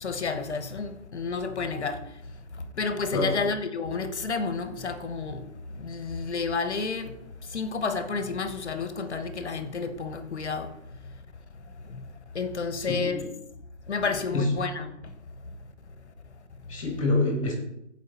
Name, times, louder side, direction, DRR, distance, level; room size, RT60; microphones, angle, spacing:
voice 1, 0.0-2.1 2.8-5.5 5.7-7.2 7.5-10.7 11.9-12.0 12.3-13.2 13.9-14.9, left 4 dB, 55° left, 1.1 m, -30 dB
voice 2, 12.7-13.3 14.3-14.5 16.7-17.5, left 2 dB, 25° left, 1.9 m, -27 dB
13.5 x 5.1 x 4.1 m
hypercardioid pair, 170°, 39 cm